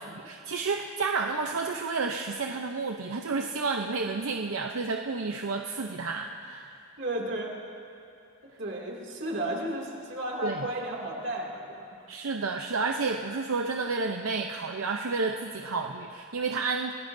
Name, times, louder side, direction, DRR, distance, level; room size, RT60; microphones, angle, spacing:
voice 1, 0.0-6.8 10.4-10.7 12.1-16.9, right 4 dB, 80° right, 3 dB, 0.7 m, -31 dB
voice 2, 7.0-7.5 8.6-11.9, right 1 dB, 55° right, -1 dB, 2.5 m, -33 dB
28.0 x 18.0 x 2.7 m, 2.6 s
head